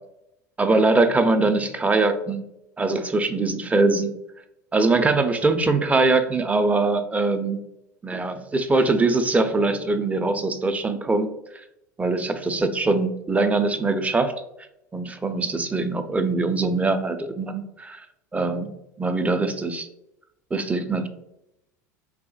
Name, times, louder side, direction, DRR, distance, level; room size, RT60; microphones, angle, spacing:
voice 1, 0.6-2.4 2.8-4.1 4.7-7.6 8.0-11.6 12.0-14.3 14.9-18.0 18.3-19.9 20.5-21.1, right 3 dB, 15° right, 9 dB, 0.5 m, -22 dB
4.9 x 3.1 x 2.3 m, 0.85 s
hypercardioid pair, 85°, 10 cm